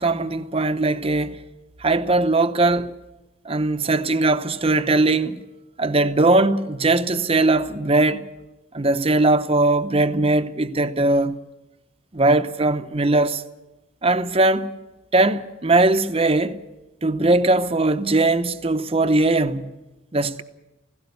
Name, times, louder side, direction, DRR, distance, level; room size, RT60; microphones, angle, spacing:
voice 1, 0.0-1.4 1.8-2.9 3.4-5.4 5.8-8.3 8.7-11.4 12.1-13.4 14.0-14.7 15.1-16.6 17.0-19.7 20.1-20.4, right 2 dB, 30° right, 0.8 m, -20 dB
17.0 x 16.5 x 9.7 m
head